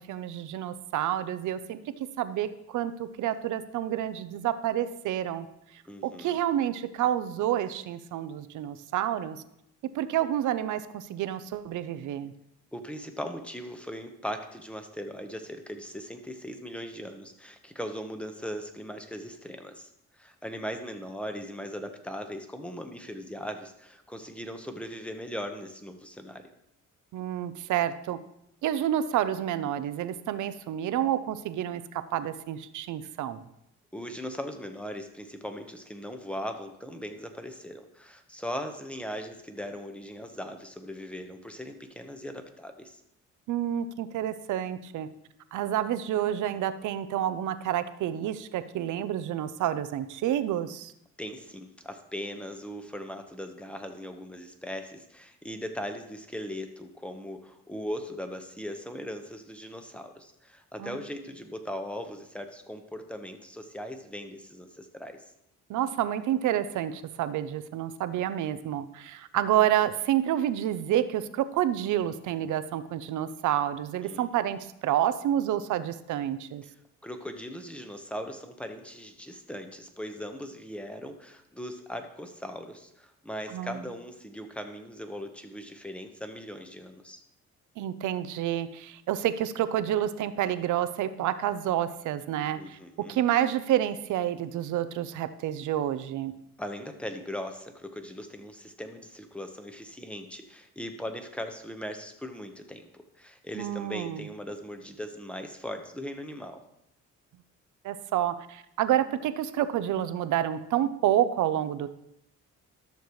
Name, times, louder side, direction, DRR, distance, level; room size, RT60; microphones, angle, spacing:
voice 1, 0.1-1.8 2.2-5.5 6.0-9.4 9.9-12.3 27.1-28.2 28.6-33.4 43.5-45.1 45.5-50.9 60.8-61.0 65.7-76.6 83.5-83.8 87.8-96.3 103.6-104.3 107.8-111.9, right 11 dB, 80° right, 13 dB, 0.7 m, -29 dB
voice 2, 5.9-6.4 12.7-26.5 33.9-43.0 51.2-65.2 74.0-74.3 76.6-76.7 77.0-87.2 92.6-93.1 96.6-106.6, equal, 5° left, 6 dB, 1.1 m, -39 dB
12.5 x 6.7 x 3.1 m, 0.77 s
cardioid pair, 90°, 30 cm